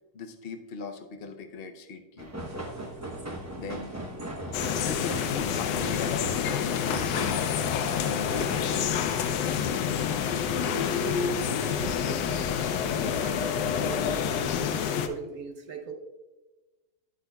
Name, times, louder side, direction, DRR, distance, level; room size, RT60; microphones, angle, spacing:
voice 1, 0.1-2.3 3.6-3.9 4.8-8.9, left 4 dB, 60° left, 6 dB, 0.6 m, -39 dB
sound 1, 2.2-8.9, right 1 dB, 15° right, 0.5 m, -38 dB
sound 2, 2.4-14.7, equal, 85° right, 2.0 m, -50 dB
sound 3, 4.5-15.1, left 8 dB, 90° left, 1.2 m, -28 dB
voice 2, 10.6-12.5 12.9-15.9, right 5 dB, 65° right, 3 dB, 1.3 m, -40 dB
10.0 x 8.1 x 2.3 m, 1.2 s
omnidirectional pair, 1.8 m